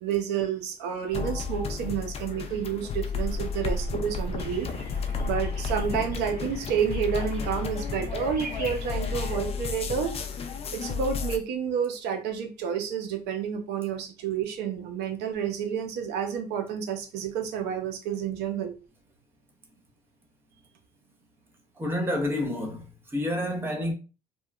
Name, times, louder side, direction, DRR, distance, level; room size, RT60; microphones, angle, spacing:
voice 1, 0.0-4.7 5.2-10.2 10.7-18.7, right 8 dB, 85° right, 0.5 m, -30 dB
sound 1, 1.1-11.4, left 5 dB, 35° left, 0.4 m, -32 dB
sound 2, 4.4-9.4, left 1 dB, 60° right, 1.4 m, -40 dB
voice 2, 21.8-23.9, left 1 dB, 15° right, 0.7 m, -29 dB
2.8 x 2.2 x 2.3 m
cardioid pair, 110°, 17 cm